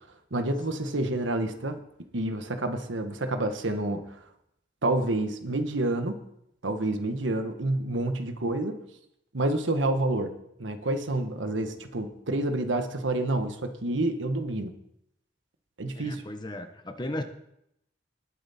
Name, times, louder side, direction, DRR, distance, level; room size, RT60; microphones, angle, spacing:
voice 1, 0.3-1.8 2.1-4.0 4.8-6.2 6.6-8.8 9.3-10.3 10.6-14.7 15.8-16.2, right 2 dB, 90° right, 7 dB, 1.3 m, -28 dB
voice 2, 15.9-17.2, left 1 dB, 25° left, 7 dB, 1.0 m, -36 dB
20.0 x 7.4 x 4.2 m, 0.78 s
head